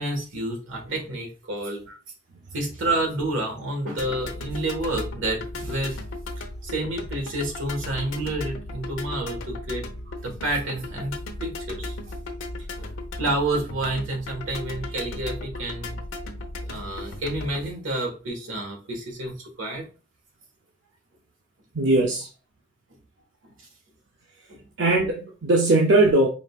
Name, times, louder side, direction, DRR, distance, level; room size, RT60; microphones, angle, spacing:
voice 1, 0.0-1.8 2.5-6.0 6.4-9.9 10.2-12.0 12.8-12.9 13.2-16.0 16.6-19.9 24.5-24.6, right 1 dB, 80° right, 1.5 m, -29 dB
sound 1, 4.0-17.7, left 2 dB, 85° left, 0.8 m, -36 dB
voice 2, 21.7-22.3 24.8-26.3, right 2 dB, 60° right, 0.6 m, -20 dB
5.0 x 3.5 x 2.4 m
head